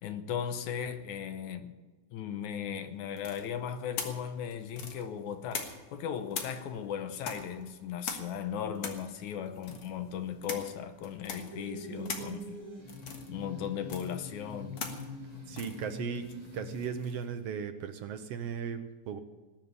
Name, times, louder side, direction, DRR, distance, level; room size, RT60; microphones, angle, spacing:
voice 1, 0.0-1.7 2.1-12.6 13.3-14.8, left 8 dB, 75° left, 2.2 m, -37 dB
sound 1, 3.2-6.0 6.3-17.3, left 5 dB, 55° left, 2.3 m, -43 dB
sound 2, 11.5-16.9, left 1 dB, 40° right, 4.3 m, -43 dB
voice 2, 15.5-16.2 16.5-19.2, right 7 dB, 70° right, 1.5 m, -37 dB
19.0 x 7.3 x 9.6 m
omnidirectional pair, 3.6 m